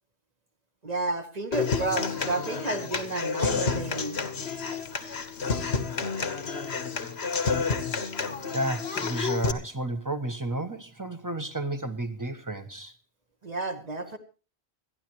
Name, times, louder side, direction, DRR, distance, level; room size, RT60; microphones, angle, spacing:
voice 1, 0.8-4.1 13.4-14.2, right 2 dB, 40° right, 1.6 m, -31 dB
Human voice / Acoustic guitar, 1.5-9.5, left 5 dB, 90° left, 1.6 m, -30 dB
voice 2, 8.5-12.9, right 1 dB, 20° right, 1.2 m, -32 dB
27.0 x 10.5 x 3.1 m
omnidirectional pair, 1.0 m